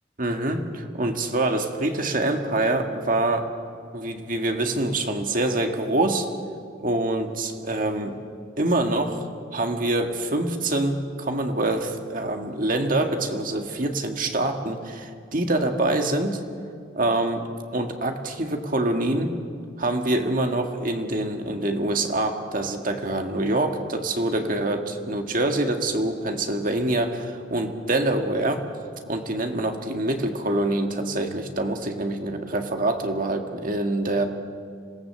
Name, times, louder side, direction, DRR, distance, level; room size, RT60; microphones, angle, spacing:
voice 1, 0.2-3.5 3.9-6.3 6.8-8.2 8.6-9.3 9.5-16.4 17.0-19.4 19.8-28.6 29.1-34.3, right 2 dB, 45° right, 4 dB, 1.9 m, -25 dB
26.0 x 17.5 x 7.7 m, 2.2 s
head